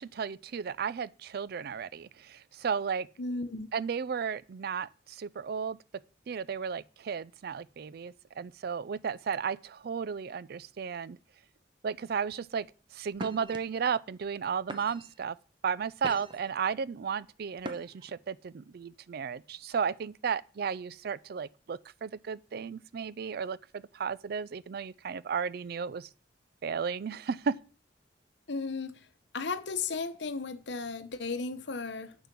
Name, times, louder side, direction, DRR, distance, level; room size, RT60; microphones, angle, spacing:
voice 1, 0.0-3.1 3.7-5.8 6.3-11.2 11.8-12.7 12.9-15.4 15.6-26.1 26.6-27.6, right 6 dB, 60° right, 0.4 m, -34 dB
voice 2, 3.2-3.7 28.5-29.1 29.3-32.2, left 4 dB, 70° left, 0.9 m, -35 dB
sound 1, 12.3-12.6 13.1-13.6 14.2-14.4 14.7-15.2 15.7-16.5 17.6-18.1, right 1 dB, 25° right, 0.9 m, -41 dB
7.9 x 6.8 x 6.0 m
head